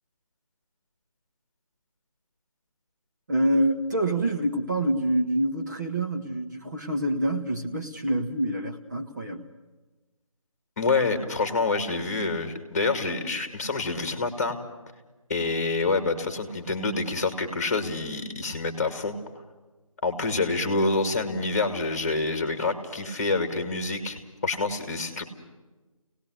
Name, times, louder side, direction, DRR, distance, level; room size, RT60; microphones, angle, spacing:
voice 1, 3.3-9.5, right 1 dB, 30° right, 2 dB, 1.6 m, -26 dB
voice 2, 10.8-14.6 15.3-19.2 20.0-25.2, left 3 dB, 25° left, 7 dB, 2.4 m, -27 dB
28.0 x 19.0 x 6.6 m, 1.2 s
figure-of-eight pair, 170°, 18 cm